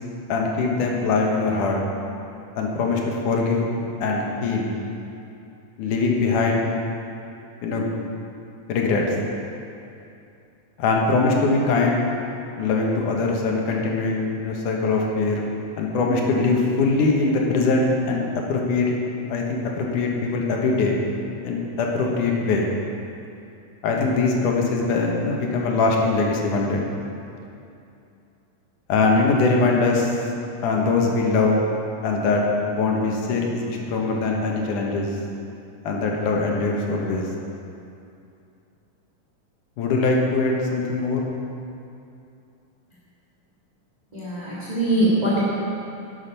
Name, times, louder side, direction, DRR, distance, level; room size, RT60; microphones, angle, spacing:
voice 1, 0.3-1.8 2.6-3.7 4.0-4.7 5.8-6.7 7.6-7.9 8.7-9.1 10.8-12.1 12.6-15.4 15.8-18.2 18.5-18.9 19.3-20.9 21.4-22.7 23.8-26.9 28.9-30.3 30.6-31.6 32.0-35.1 35.8-37.3 39.8-41.2, left 3 dB, 80° left, -1 dB, 2.8 m, -22 dB
voice 2, 44.1-45.4, right 1 dB, 20° right, -8 dB, 1.3 m, -22 dB
12.0 x 8.1 x 5.7 m, 2.7 s
omnidirectional pair, 3.6 m